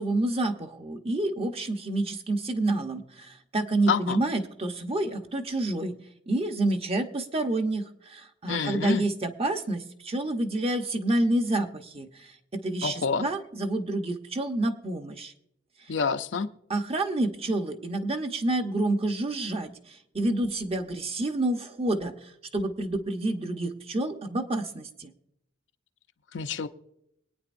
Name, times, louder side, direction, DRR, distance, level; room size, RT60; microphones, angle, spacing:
voice 1, 0.0-5.9 6.3-15.3 16.7-22.1 22.5-25.1, right 2 dB, 30° right, 5 dB, 0.9 m, -28 dB
voice 2, 3.9-4.2 8.5-9.0 12.8-13.3 15.9-16.5 26.3-26.7, left 5 dB, 70° left, 9 dB, 0.6 m, -27 dB
23.5 x 9.3 x 2.6 m, 0.79 s
head